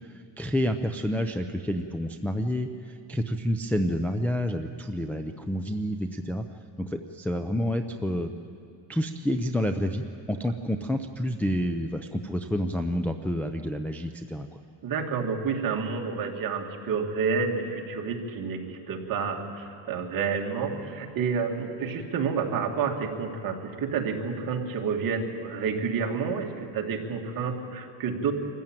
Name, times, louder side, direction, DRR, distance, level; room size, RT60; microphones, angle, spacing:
voice 1, 0.4-6.4 6.8-8.3 8.9-14.5, equal, 5° left, 4 dB, 0.4 m, -29 dB
voice 2, 14.8-28.3, right 5 dB, 45° right, 1 dB, 2.4 m, -29 dB
25.5 x 14.5 x 9.1 m, 2.7 s
cardioid pair, 145°, 46 cm